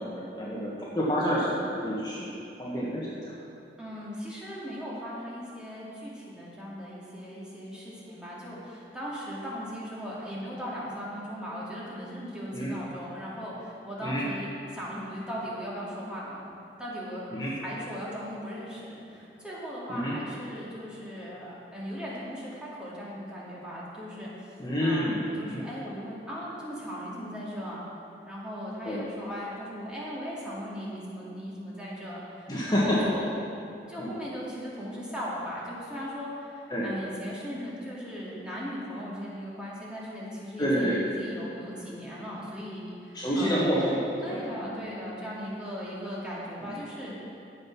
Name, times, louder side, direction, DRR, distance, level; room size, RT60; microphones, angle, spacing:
voice 1, 0.0-2.3 2.6-3.1 12.5-12.7 14.0-14.2 17.3-17.5 19.9-20.1 24.6-25.6 28.8-29.0 32.5-33.0 34.0-34.1 36.7-36.9 40.6-41.0 43.1-44.6 46.6-46.8, equal, 25° left, -7 dB, 1.6 m, -28 dB
voice 2, 3.8-16.4 16.8-24.5 24.8-27.8 28.3-33.3 33.9-43.7 44.2-47.2, equal, 5° right, -7 dB, 2.3 m, -38 dB
12.0 x 7.8 x 6.0 m, 2.6 s
head